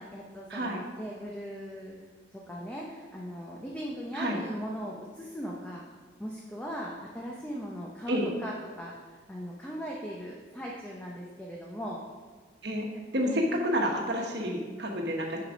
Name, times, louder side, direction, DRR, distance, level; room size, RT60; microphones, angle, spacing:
voice 1, 0.0-2.0 2.3-5.8 6.2-12.0 13.3-13.5, equal, 10° left, -3 dB, 0.6 m, -39 dB
voice 2, 13.1-15.4, equal, 65° right, 1 dB, 1.2 m, -29 dB
7.0 x 5.0 x 5.1 m, 1.5 s
head